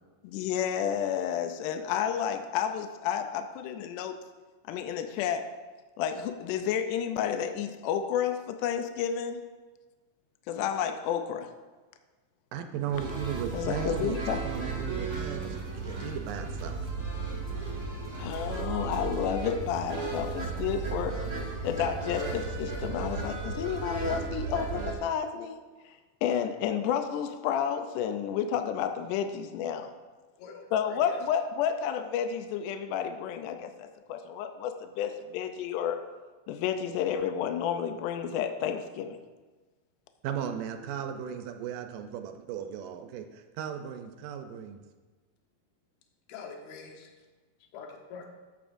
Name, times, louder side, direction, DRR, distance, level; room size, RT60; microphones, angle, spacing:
voice 1, 0.2-4.2 4.7-5.5 6.0-9.4 10.5-11.5 13.5-14.4 18.2-21.2 21.6-25.6 26.2-29.9 30.7-36.0 36.5-39.2, left 8 dB, 80° left, 7 dB, 1.9 m, -31 dB
voice 2, 12.5-16.9 40.2-44.8, right 8 dB, 80° right, 7 dB, 2.1 m, -36 dB
sound 1, 12.9-24.9, right 3 dB, 35° right, 1.7 m, -35 dB
voice 3, 30.4-31.2 46.3-47.1 47.7-48.3, left 5 dB, 65° left, 2 dB, 2.0 m, -44 dB
13.5 x 8.6 x 2.6 m, 1.3 s
omnidirectional pair, 4.1 m